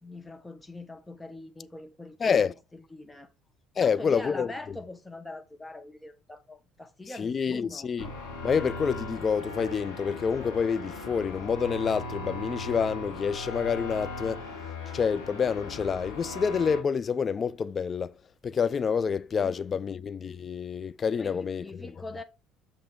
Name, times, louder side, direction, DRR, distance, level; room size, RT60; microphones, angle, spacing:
voice 1, 0.0-3.3 3.8-7.9 21.2-22.2, left 2 dB, 10° left, 1.2 m, -43 dB
voice 2, 2.2-2.5 3.8-4.8 7.2-8.1 8.4-14.4 14.9-18.1 18.4-21.9, left 6 dB, 35° left, 0.4 m, -28 dB
sound 1, 8.0-16.8, left 2 dB, 75° left, 1.8 m, -38 dB
6.5 x 5.6 x 3.5 m
figure-of-eight pair, 55°, 0 cm